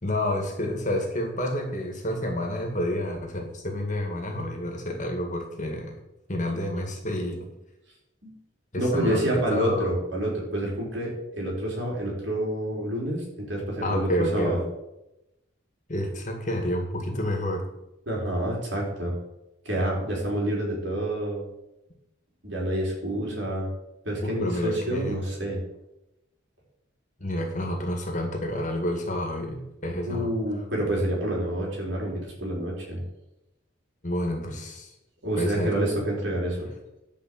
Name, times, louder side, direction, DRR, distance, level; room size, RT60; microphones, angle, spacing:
voice 1, 0.0-6.0 6.3-7.5 8.7-9.9 13.8-14.6 15.9-17.6 24.2-25.2 27.2-30.3 34.0-34.9 35.4-35.8, left 1 dB, 40° left, 2 dB, 2.0 m, -29 dB
voice 2, 8.8-14.6 18.1-19.1 19.6-21.4 22.4-23.7 24.0-25.6 30.1-33.0 35.2-36.7, right 1 dB, 60° right, -2 dB, 4.2 m, -28 dB
11.5 x 5.1 x 7.8 m, 0.92 s
head